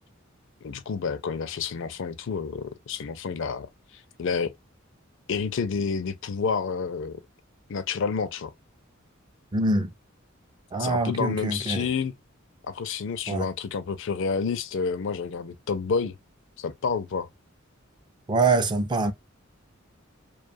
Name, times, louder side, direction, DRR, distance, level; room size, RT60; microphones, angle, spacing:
voice 1, 0.6-3.7 4.2-4.5 5.3-7.2 7.7-8.5 10.8-12.1 12.6-16.2 16.6-17.3, left 5 dB, 65° left, 0.4 m, -29 dB
voice 2, 9.5-9.9 10.7-11.9 13.3-13.5 18.3-19.1, right 3 dB, 20° right, 0.4 m, -24 dB
2.6 x 2.3 x 2.6 m
head